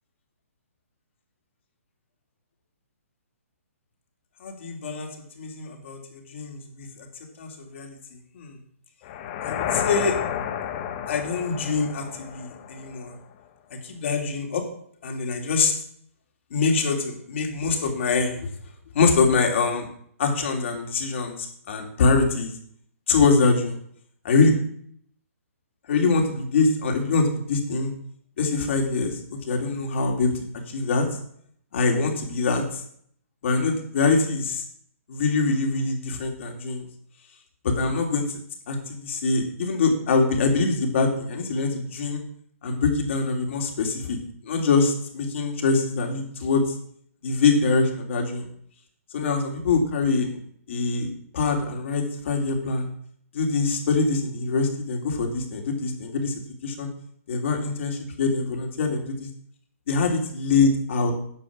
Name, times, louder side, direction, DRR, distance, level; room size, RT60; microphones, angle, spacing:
voice 1, 4.4-5.1 5.4-7.1 7.4-7.9 8.3-8.6 9.4-10.2 11.1-13.1 13.7-14.7 15.0-15.7 16.5-18.5 18.9-19.9 20.2-22.5 23.1-23.8 24.2-24.5 25.9-27.9 28.4-31.1 31.7-32.8 33.4-34.6 35.1-36.9 37.6-38.4 38.7-42.2 42.6-44.2 44.4-46.7 47.2-48.5 49.1-50.4 50.7-51.1 51.3-52.9 53.3-56.3 56.6-56.9 57.3-59.3 59.9-61.1, left 4 dB, 55° left, 3 dB, 3.0 m, -24 dB
sound 1, 9.0-13.1, left 9 dB, 35° left, 1.2 m, -31 dB
10.0 x 6.4 x 7.4 m, 0.64 s
hypercardioid pair, 145°, 8 cm